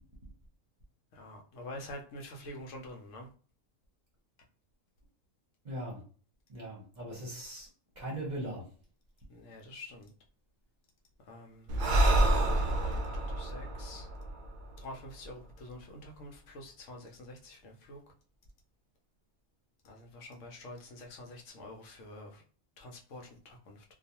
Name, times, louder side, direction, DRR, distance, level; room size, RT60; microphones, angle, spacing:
voice 1, 1.1-3.3 9.3-10.1 11.2-14.1 14.8-18.0 19.8-22.4 22.8-23.8, left 1 dB, 70° left, 1 dB, 0.9 m, -47 dB
voice 2, 5.6-6.0 6.5-7.7 8.0-8.6, right 1 dB, 40° right, -3 dB, 0.8 m, -39 dB
Breathing, 11.7-15.2, right 1 dB, 65° right, 0.5 m, -28 dB
2.3 x 2.3 x 2.8 m, 0.41 s
omnidirectional pair, 1.4 m